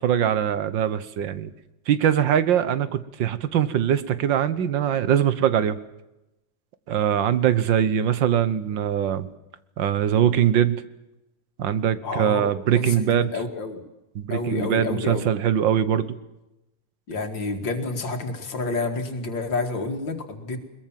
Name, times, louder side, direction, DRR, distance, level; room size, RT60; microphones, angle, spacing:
voice 1, 0.0-1.5 1.9-5.8 6.9-9.3 9.8-10.8 11.6-13.3 14.2-16.2, right 9 dB, 90° right, 14 dB, 1.8 m, -22 dB
voice 2, 12.0-13.8 14.3-15.3 17.1-20.6, left 3 dB, 90° left, 5 dB, 3.0 m, -29 dB
21.5 x 21.5 x 7.5 m, 0.94 s
omnidirectional pair, 2.0 m